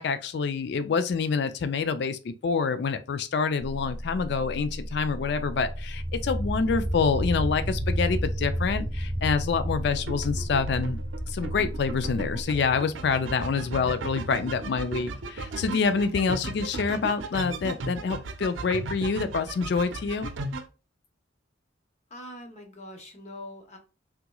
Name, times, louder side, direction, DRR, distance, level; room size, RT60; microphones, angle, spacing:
voice 1, 0.0-11.0 11.3-20.3, left 5 dB, 60° left, 0.4 m, -27 dB
sound 1, 3.6-12.5, equal, 15° left, 1.0 m, -37 dB
sound 2, 5.5-17.0, equal, 25° right, 0.8 m, -33 dB
sound 3, 9.9-20.7, right 3 dB, 90° right, 0.5 m, -36 dB
voice 2, 22.1-23.8, left 1 dB, 40° left, 0.9 m, -43 dB
3.5 x 2.9 x 2.2 m
head